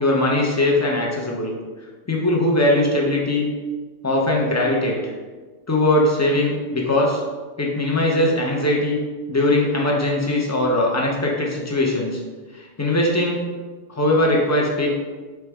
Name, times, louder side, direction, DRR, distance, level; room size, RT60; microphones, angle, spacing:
voice 1, 0.0-1.5 2.1-3.5 4.0-5.0 5.7-7.2 7.6-9.0 9.3-12.2 12.5-13.4 13.9-14.9, left 1 dB, 25° left, -2 dB, 0.4 m, -20 dB
4.5 x 3.2 x 3.4 m, 1.4 s
omnidirectional pair, 1.3 m